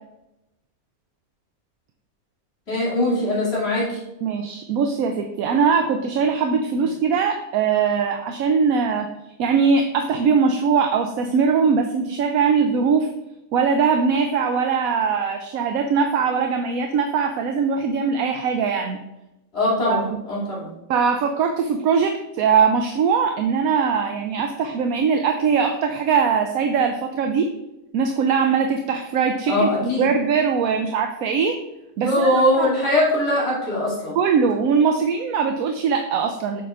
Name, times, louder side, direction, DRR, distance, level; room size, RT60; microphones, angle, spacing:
voice 1, 2.7-4.0 19.5-20.7 29.5-30.1 32.0-34.2, left 1 dB, 45° left, -5 dB, 2.9 m, -21 dB
voice 2, 4.2-9.1 9.4-13.1 13.5-19.0 19.9-20.2 20.9-27.5 27.9-31.6 32.0-32.7 34.2-36.6, right 6 dB, 75° right, 5 dB, 1.0 m, -21 dB
8.1 x 6.9 x 2.5 m, 0.92 s
omnidirectional pair, 1.5 m